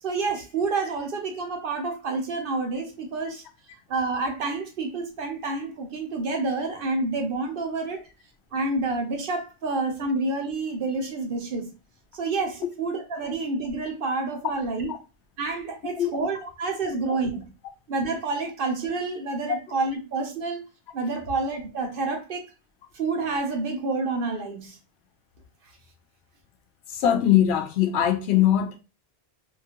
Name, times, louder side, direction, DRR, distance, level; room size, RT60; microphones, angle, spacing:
voice 1, 0.0-3.4 3.9-8.1 8.5-11.7 12.1-14.9 15.4-17.5 17.9-20.6 20.9-22.4 22.9-24.8, right 3 dB, 60° right, 0.9 m, -28 dB
voice 2, 26.9-28.8, left 11 dB, 85° left, 0.9 m, -21 dB
2.8 x 2.3 x 2.8 m
omnidirectional pair, 1.1 m